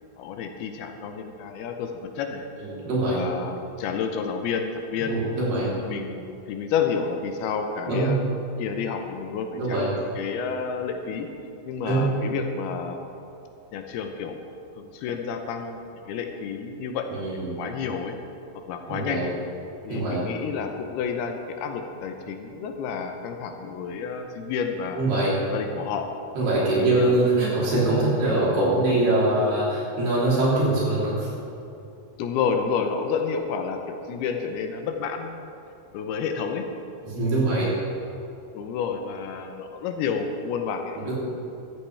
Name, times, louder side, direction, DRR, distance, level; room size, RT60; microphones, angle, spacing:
voice 1, 0.2-2.5 3.1-5.2 5.6-8.2 8.6-9.8 10.2-11.3 11.6-13.0 13.7-14.4 14.8-18.2 18.7-19.3 19.8-25.0 25.5-26.1 26.7-27.2 32.2-35.5 35.9-36.7 38.5-41.1, left 6 dB, 80° left, 5 dB, 2.6 m, -30 dB
voice 2, 2.6-3.2 5.0-5.7 7.9-8.1 9.5-9.9 11.9-12.1 17.1-17.6 18.9-19.2 19.9-20.2 25.0-25.3 26.4-31.3 37.0-37.7 41.0-41.1, right 2 dB, 70° right, -7 dB, 5.3 m, -23 dB
14.5 x 14.0 x 3.4 m, 2.7 s
omnidirectional pair, 4.7 m